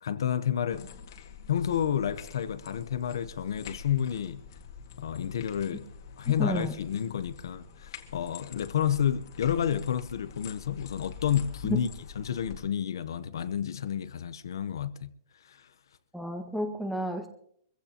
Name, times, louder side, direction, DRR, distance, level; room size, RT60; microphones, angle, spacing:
voice 1, 0.0-0.9 1.5-4.4 5.0-5.9 6.2-11.9 12.2-15.1 15.4-15.7, left 9 dB, 80° left, 0.8 m, -30 dB
sound 1, 0.7-12.6, left 6 dB, 60° left, 1.9 m, -46 dB
voice 2, 6.4-6.7 11.6-11.8 16.1-17.3, equal, ahead, 1.5 m, -31 dB
24.0 x 15.5 x 2.9 m
hypercardioid pair, 160°, 2 cm